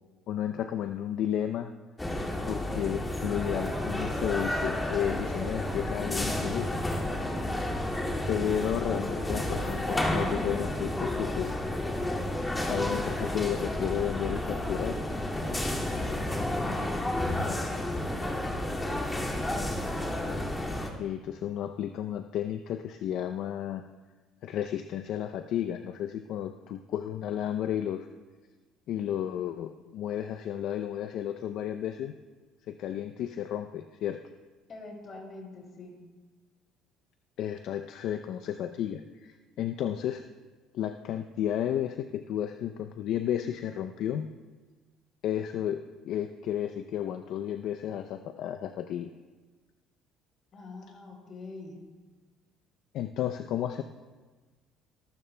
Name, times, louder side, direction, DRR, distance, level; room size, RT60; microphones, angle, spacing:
voice 1, 0.3-1.7 2.5-6.8 7.3-7.5 8.3-11.6 12.7-15.0 21.0-23.8 24.4-28.1 28.9-32.1 32.7-34.2 37.4-40.2 40.7-44.3 45.2-49.1 52.9-53.8, left 10 dB, 65° left, 8 dB, 0.5 m, -32 dB
sound 1, 2.0-20.9, left 1 dB, 15° left, 2.2 m, -31 dB
voice 2, 16.5-18.3 34.7-36.0 50.5-51.8, left 3 dB, 45° left, 0 dB, 5.1 m, -44 dB
22.5 x 14.5 x 2.2 m, 1.3 s
supercardioid pair, 75°, 0 cm